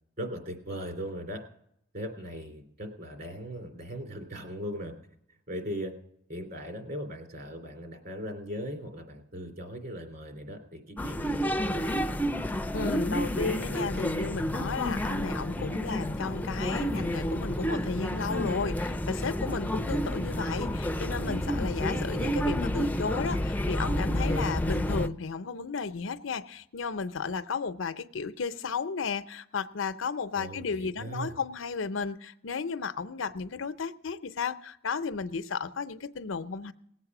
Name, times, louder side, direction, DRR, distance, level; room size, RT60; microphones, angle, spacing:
voice 1, 0.2-1.4 1.9-4.9 5.5-5.9 6.3-11.9 30.3-31.4, equal, 50° right, 5 dB, 3.1 m, -39 dB
sound 1, 11.0-25.1, equal, 10° left, 0.4 m, -30 dB
voice 2, 12.7-36.7, left 5 dB, 90° left, 13 dB, 0.7 m, -34 dB
18.5 x 8.2 x 6.0 m, 0.72 s
head